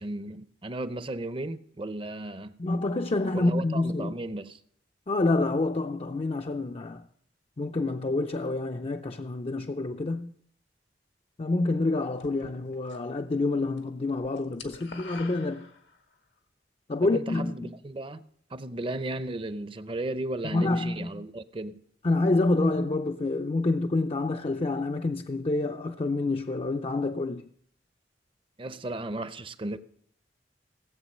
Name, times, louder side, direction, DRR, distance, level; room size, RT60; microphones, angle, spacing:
voice 1, 0.0-2.6 3.3-4.6 17.0-18.2 18.5-21.8 28.6-29.8, right 2 dB, 30° right, 0.6 m, -35 dB
voice 2, 2.6-4.2 5.1-7.0 7.6-10.3 11.4-15.7 16.9-17.7 20.4-21.2 22.0-27.5, left 2 dB, 35° left, 0.5 m, -27 dB
sound 1, 12.2-13.2 13.5-13.8 14.1-16.2, left 4 dB, 85° left, 1.8 m, -46 dB
17.0 x 7.9 x 6.5 m
head